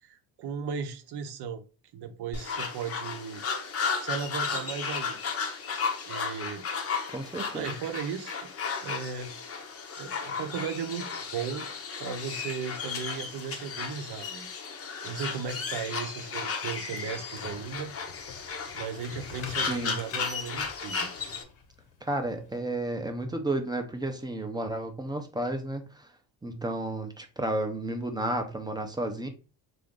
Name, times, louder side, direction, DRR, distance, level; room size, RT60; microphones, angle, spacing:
voice 1, 0.0-1.6 1.9-3.4 4.0-5.2 6.1-6.6 7.5-8.5 8.8-9.3 10.0-11.7 12.0-14.5 15.0-17.9 18.7-21.1, right 6 dB, 60° right, 0.8 m, -36 dB
sound 1, 2.3-21.4, left 5 dB, 30° left, 0.7 m, -34 dB
voice 2, 7.1-7.8 19.7-20.0 22.0-26.1 26.4-29.3, right 1 dB, 10° right, 0.6 m, -32 dB
sound 2, 17.1-22.6, left 6 dB, 90° left, 1.3 m, -45 dB
3.6 x 2.6 x 3.6 m
cardioid pair, 110°, 44 cm